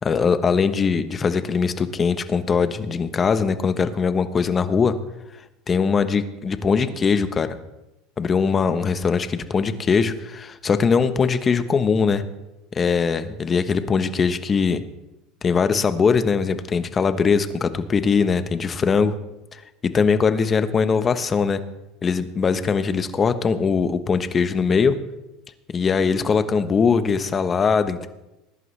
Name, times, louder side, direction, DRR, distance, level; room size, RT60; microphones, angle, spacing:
voice 1, 0.0-4.9 5.7-7.6 8.2-12.2 12.7-14.8 15.4-19.1 19.5-21.6 22.0-24.9 25.7-28.1, left 5 dB, 30° left, 11 dB, 1.1 m, -21 dB
20.0 x 11.0 x 3.3 m, 0.97 s
supercardioid pair, 110°, 0 cm